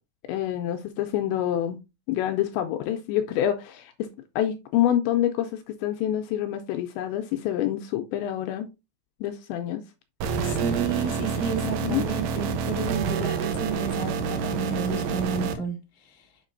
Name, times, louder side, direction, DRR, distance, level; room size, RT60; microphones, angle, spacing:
voice 1, 0.3-1.8 2.1-4.1 4.4-8.7 9.2-9.8 11.6-12.0, left 11 dB, 85° left, 2.7 m, -27 dB
sound 1, 10.2-15.5, right 5 dB, 80° right, 2.5 m, -28 dB
voice 2, 10.4-15.8 16.0-16.3, right 5 dB, 50° left, 0.7 m, -31 dB
7.3 x 6.0 x 2.6 m
omnidirectional pair, 5.6 m